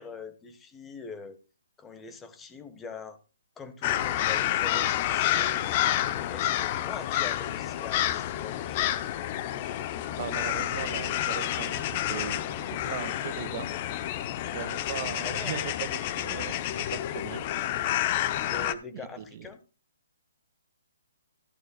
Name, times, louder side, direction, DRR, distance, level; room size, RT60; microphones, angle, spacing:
voice 1, 0.0-1.4 1.8-3.2 3.6-5.7 6.1-8.8 15.2-15.6 18.4-19.6, left 4 dB, 10° left, 11 dB, 1.4 m, -43 dB
sound 1, 3.8-18.7, left 12 dB, 30° left, 0.9 m, -29 dB
voice 2, 9.6-13.7 14.1-14.2 14.5-17.4 18.9-19.5, right 9 dB, 40° right, 9 dB, 2.0 m, -39 dB
15.0 x 11.0 x 2.4 m, 0.34 s
hypercardioid pair, 155°, 0 cm